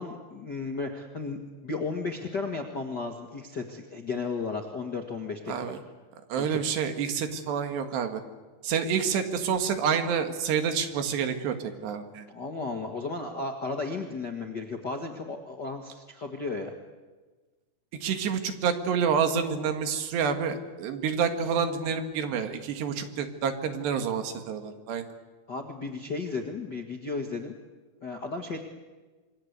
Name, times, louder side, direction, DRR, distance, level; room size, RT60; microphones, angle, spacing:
voice 1, 0.0-5.8 6.4-6.6 12.3-16.7 25.5-27.5 28.0-28.6, left 3 dB, 50° left, 3 dB, 1.2 m, -34 dB
voice 2, 5.5-5.8 6.3-8.2 8.6-12.3 18.0-25.1, right 7 dB, 85° right, 7 dB, 4.0 m, -28 dB
27.0 x 22.5 x 8.1 m, 1.3 s
omnidirectional pair, 4.8 m